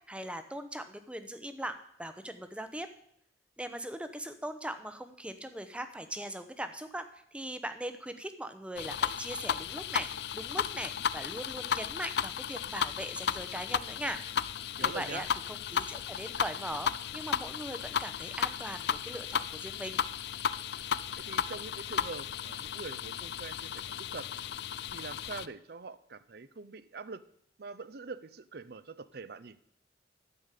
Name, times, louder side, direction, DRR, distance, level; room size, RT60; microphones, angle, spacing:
voice 1, 0.1-2.9 3.6-10.1 10.3-14.2 14.8-20.0, right 1 dB, 5° right, 9 dB, 0.8 m, -40 dB
sound 1, 8.8-25.5, left 8 dB, 65° left, 0.4 m, -34 dB
voice 2, 14.8-15.3 21.2-24.3 24.9-27.2 27.6-29.6, right 4 dB, 60° right, 15 dB, 0.6 m, -44 dB
12.5 x 5.2 x 8.3 m, 0.68 s
head